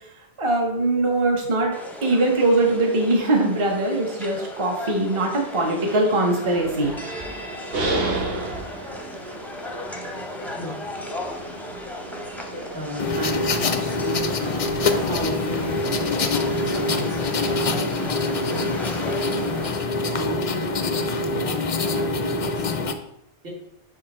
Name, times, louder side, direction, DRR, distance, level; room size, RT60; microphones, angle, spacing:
voice 1, 0.4-1.7 2.0-6.9, right 2 dB, 25° right, 1 dB, 1.0 m, -21 dB
sound 1, 1.7-19.7, left 1 dB, ahead, 0.6 m, -37 dB
sound 2, 6.6-22.1, right 2 dB, 55° right, 1.2 m, -35 dB
voice 2, 12.7-14.7 15.0-19.6 20.2-22.9 23.4-23.5, left 2 dB, 75° right, -3 dB, 2.3 m, -35 dB
sound 3, 13.0-22.9, left 3 dB, 50° left, 0.4 m, -25 dB
6.5 x 5.0 x 4.2 m, 0.82 s
omnidirectional pair, 1.2 m